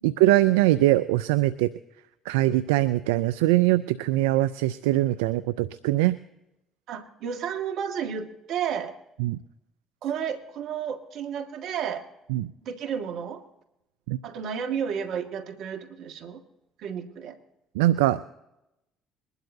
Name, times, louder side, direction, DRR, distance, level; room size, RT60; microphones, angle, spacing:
voice 1, 0.0-1.7 2.3-6.2 9.2-9.4 12.3-12.5 14.1-14.2 17.8-18.2, right 16 dB, 85° right, 14 dB, 0.4 m, -22 dB
voice 2, 6.9-9.0 10.0-12.1 12.6-13.4 14.2-16.4 16.8-17.4, right 8 dB, 65° right, 6 dB, 1.7 m, -32 dB
22.0 x 12.0 x 2.7 m, 0.87 s
hypercardioid pair, 60°, 0 cm